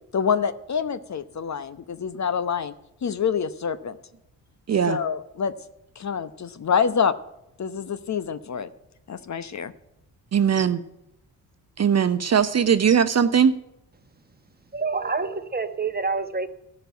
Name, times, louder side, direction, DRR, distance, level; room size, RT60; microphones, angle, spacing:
voice 1, 0.1-2.7 3.0-4.0 4.9-5.5 6.0-7.1 7.6-8.7 9.1-9.7, left 6 dB, 40° left, 0.9 m, -26 dB
voice 2, 10.3-10.8 11.8-13.6, right 7 dB, 35° right, 0.7 m, -20 dB
voice 3, 14.7-16.5, right 4 dB, 20° right, 1.2 m, -27 dB
14.0 x 6.8 x 9.3 m
hypercardioid pair, 40°, 44 cm